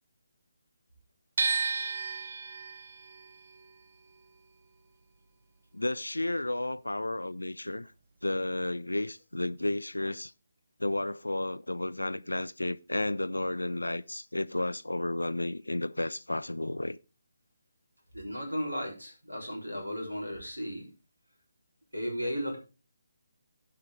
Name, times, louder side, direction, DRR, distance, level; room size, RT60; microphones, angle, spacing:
sound 1, 1.4-7.4 7.7-9.0, right 4 dB, 45° right, 1.1 m, -35 dB
voice 1, 5.7-7.9 8.2-10.3 10.8-17.0, left 1 dB, 75° left, 0.4 m, -32 dB
voice 2, 18.1-20.9 21.9-22.6, equal, 80° right, 3.9 m, -35 dB
16.5 x 5.5 x 3.5 m
figure-of-eight pair, 145°, 0 cm